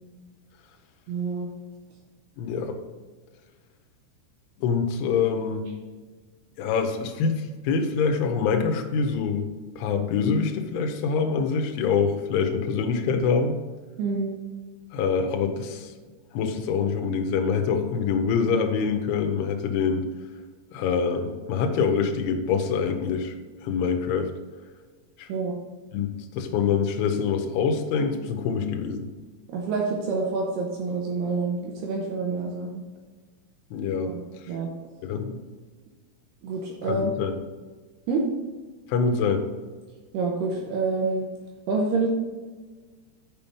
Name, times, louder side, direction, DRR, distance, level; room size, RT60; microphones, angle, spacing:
voice 1, 1.1-1.5 14.0-14.3 25.3-25.6 29.5-32.8 34.0-34.7 36.4-37.1 38.1-38.3 40.1-41.3 41.7-42.1, right 3 dB, 75° right, 0 dB, 2.6 m, -27 dB
voice 2, 2.4-2.8 4.6-5.7 6.6-9.5 9.8-13.6 14.9-15.9 16.3-20.1 20.7-23.3 23.6-24.3 25.2-25.3 25.9-29.1 33.7-34.1 34.4-34.6 35.0-35.4 36.8-37.4 38.9-39.5, left 5 dB, 80° left, 5 dB, 3.2 m, -25 dB
7.2 x 6.4 x 5.3 m, 1.4 s
omnidirectional pair, 5.6 m